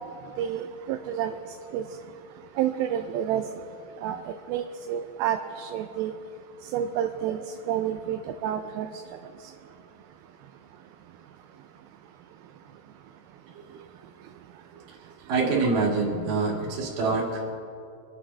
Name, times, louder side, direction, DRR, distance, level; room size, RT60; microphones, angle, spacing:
voice 1, 0.4-1.3 1.7-1.8 2.6-3.4 4.0-4.2 4.5-6.1 6.7-7.4 7.7-8.9, right 10 dB, 85° right, 6 dB, 2.4 m, -29 dB
voice 2, 15.3-17.5, right 3 dB, 65° right, -3 dB, 3.7 m, -25 dB
25.5 x 9.8 x 3.4 m, 2.6 s
omnidirectional pair, 4.3 m